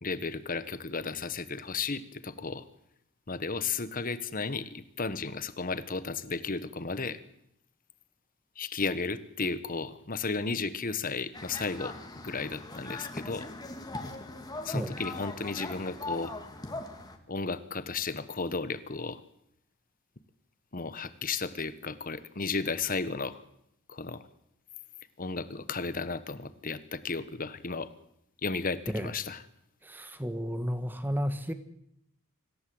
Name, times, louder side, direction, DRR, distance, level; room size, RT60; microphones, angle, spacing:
voice 1, 0.0-2.6 3.3-7.2 8.6-12.0 12.2-13.5 14.6-16.4 17.3-19.2 20.7-23.4 23.9-24.3 25.2-27.9 28.4-29.4, left 4 dB, 40° left, 14 dB, 1.2 m, -34 dB
sound 1, 11.3-17.2, left 2 dB, 20° left, 2.2 m, -40 dB
voice 2, 29.8-31.5, equal, 10° right, 10 dB, 1.6 m, -32 dB
25.5 x 15.5 x 7.9 m, 0.76 s
head